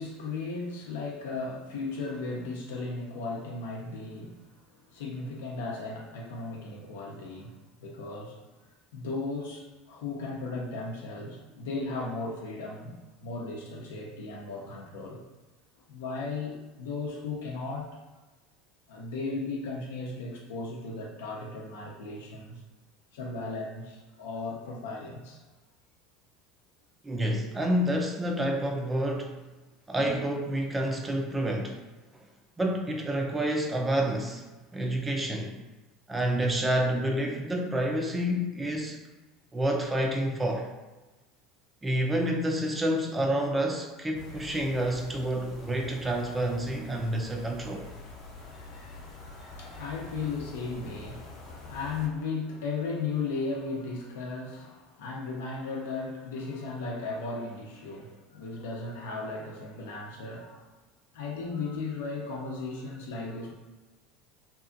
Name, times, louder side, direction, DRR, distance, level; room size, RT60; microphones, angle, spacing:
voice 1, 0.0-4.4 4.9-8.4 8.9-15.2 15.9-18.0 18.9-22.6 23.1-25.4 30.0-30.1 48.4-60.7 61.1-63.5, left 3 dB, 90° left, -1 dB, 0.6 m, -36 dB
voice 2, 27.0-29.4 29.9-31.8 32.6-35.6 36.1-39.0 39.5-40.7 41.8-47.8, right 1 dB, 15° right, 2 dB, 0.4 m, -29 dB
sound 1, 44.1-52.1, left 2 dB, 50° left, 0.7 m, -46 dB
2.7 x 2.4 x 2.5 m, 1.2 s
supercardioid pair, 110°, 0 cm